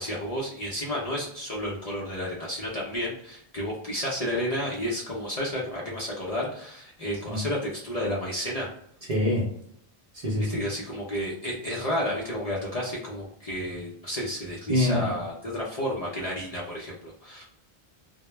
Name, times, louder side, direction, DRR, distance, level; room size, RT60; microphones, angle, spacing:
voice 1, 0.0-8.7 10.5-17.4, equal, 45° left, -5 dB, 0.5 m, -31 dB
voice 2, 9.1-9.5 10.1-10.5 14.7-15.1, left 1 dB, 45° right, -3 dB, 0.6 m, -25 dB
2.1 x 2.0 x 3.1 m, 0.70 s
omnidirectional pair, 1.1 m